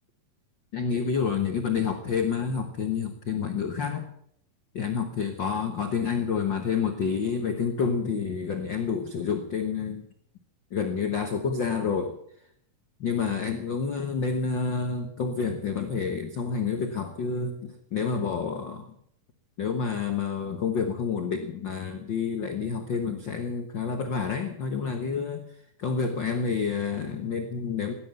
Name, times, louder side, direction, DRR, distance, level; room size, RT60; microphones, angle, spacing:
voice 1, 0.7-4.1 4.7-10.1 10.7-12.2 13.0-18.9 19.6-25.4 25.8-27.9, left 5 dB, 90° left, 6 dB, 1.0 m, -29 dB
16.5 x 11.0 x 7.8 m, 0.70 s
omnidirectional pair, 4.0 m